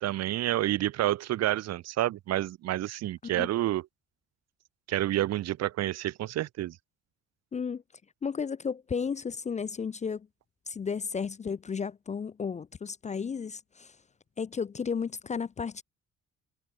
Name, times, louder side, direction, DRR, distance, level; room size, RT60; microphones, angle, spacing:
voice 1, 0.0-3.9 4.9-6.8, right 14 dB, 60° right, 0.5 m, -29 dB
voice 2, 7.5-7.8 8.2-10.3 10.7-13.9 14.4-15.8, left 6 dB, 25° left, 0.4 m, -33 dB
cardioid pair, 90°, 30 cm